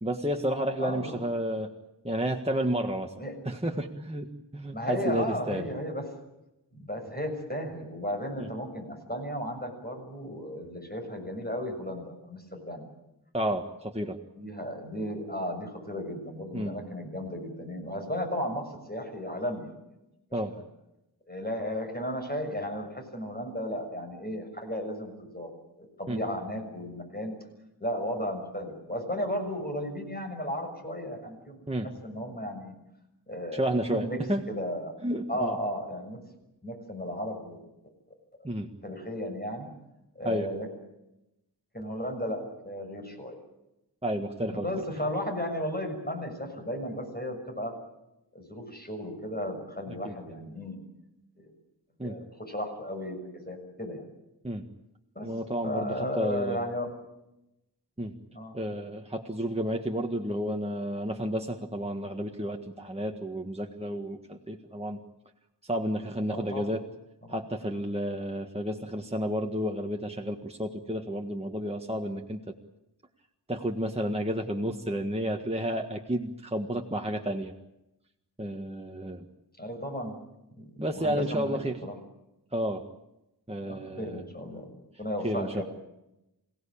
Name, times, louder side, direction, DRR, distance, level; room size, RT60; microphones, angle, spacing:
voice 1, 0.0-1.7 2.0-3.1 3.4-5.6 8.4-8.5 13.3-14.2 16.5-16.8 20.3-20.5 26.1-26.2 31.7-31.9 33.5-34.4 35.0-35.6 38.4-38.7 40.2-40.5 44.0-44.7 50.0-50.1 52.0-52.2 54.4-54.6 55.2-56.6 58.0-58.1 58.5-65.0 65.6-66.8 67.3-72.4 73.5-77.5 78.4-79.2 80.8-81.8 82.5-82.8 83.5-84.2 85.2-85.6, equal, 15° right, 2 dB, 1.7 m, -31 dB
voice 2, 0.8-1.2 3.2-3.3 4.7-6.0 6.7-12.9 14.4-19.7 20.3-20.6 21.3-25.5 25.8-27.3 27.8-31.6 32.0-32.7 33.3-34.2 34.5-34.9 35.3-36.2 36.6-37.6 38.8-39.7 40.1-40.7 41.7-43.4 44.5-47.7 48.3-50.8 51.4-51.5 52.0-54.0 55.1-55.3 55.6-56.9 58.3-58.5 66.3-66.6 67.3-67.4 79.6-80.2 80.6-80.7 80.9-81.9 83.6-84.7 85.0-85.6, equal, 25° left, 3 dB, 6.7 m, -34 dB
28.0 x 17.5 x 8.7 m, 0.91 s
wide cardioid pair, 55°, 41 cm